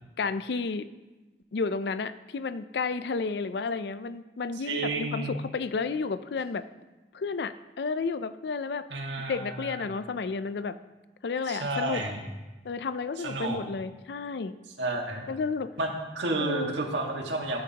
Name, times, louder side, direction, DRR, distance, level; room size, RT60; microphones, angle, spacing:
voice 1, 0.2-0.9 1.5-6.7 7.1-8.9 9.3-10.8 11.2-12.0 12.6-14.5 15.3-15.7 16.4-16.7, left 4 dB, 65° left, 13 dB, 0.4 m, -31 dB
voice 2, 4.6-5.4 8.9-9.9 11.5-12.2 13.2-13.6 14.8-15.3 15.8-17.6, right 2 dB, 80° right, 1 dB, 1.6 m, -31 dB
13.5 x 9.1 x 2.9 m, 1.2 s
head